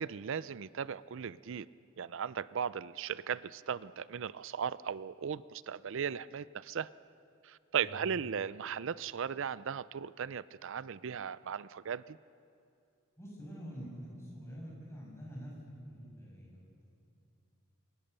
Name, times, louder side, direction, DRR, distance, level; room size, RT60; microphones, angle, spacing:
voice 1, 0.0-1.7 2.0-6.9 7.4-12.2, right 7 dB, 65° right, 18 dB, 0.5 m, -37 dB
voice 2, 13.2-16.6, equal, 15° left, -4 dB, 6.6 m, -46 dB
28.0 x 22.5 x 6.7 m, 2.5 s
head